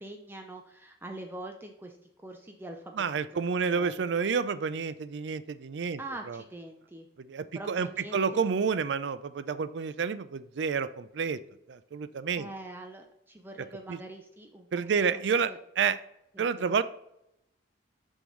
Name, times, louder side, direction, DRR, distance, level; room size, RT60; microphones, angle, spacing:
voice 1, 0.0-4.0 6.0-7.1 7.5-8.4 12.4-14.7 14.9-15.6 16.3-16.7, right 2 dB, 10° right, 3 dB, 0.5 m, -44 dB
voice 2, 3.0-6.0 6.3-6.4 7.3-7.9 8.1-11.4 11.7-12.5 13.9-14.0 14.7-15.5 15.8-16.0 16.4-16.8, right 6 dB, 70° right, 15 dB, 0.4 m, -29 dB
6.9 x 5.4 x 3.1 m, 0.81 s
head